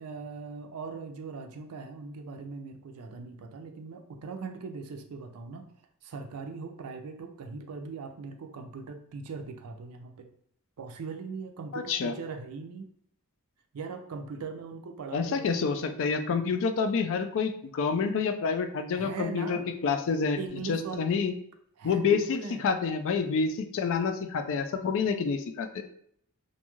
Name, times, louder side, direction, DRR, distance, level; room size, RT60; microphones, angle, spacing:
voice 1, 0.0-5.7 6.0-10.3 10.8-12.9 13.7-15.7 18.9-19.7 20.4-21.1 21.8-22.7, right 4 dB, 75° right, 6 dB, 0.4 m, -40 dB
voice 2, 11.7-12.1 15.1-20.4 20.7-21.3 21.8-25.8, left 5 dB, 60° left, 7 dB, 0.3 m, -28 dB
2.6 x 2.3 x 2.9 m, 0.67 s
head